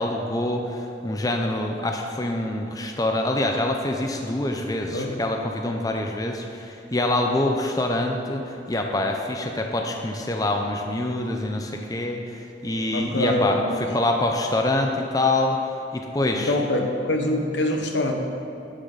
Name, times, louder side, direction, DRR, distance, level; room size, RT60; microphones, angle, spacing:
voice 1, 0.0-13.6 13.9-15.6 15.9-16.5, left 1 dB, 20° left, 3 dB, 0.6 m, -25 dB
voice 2, 12.9-13.9 16.3-18.1, left 1 dB, 70° left, 3 dB, 1.2 m, -25 dB
11.5 x 9.9 x 4.0 m, 2.9 s
head